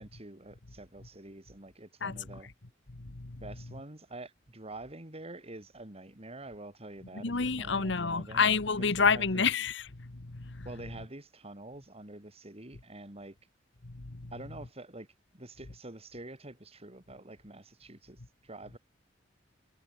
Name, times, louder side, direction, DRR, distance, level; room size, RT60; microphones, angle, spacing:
voice 1, 0.0-2.5 3.4-9.5 10.6-13.4 14.3-18.8, right 2 dB, 35° right, 3.3 m, -47 dB
voice 2, 2.0-2.4 2.9-3.4 7.2-10.7 13.8-14.3, left 5 dB, 65° left, 1.3 m, -29 dB
head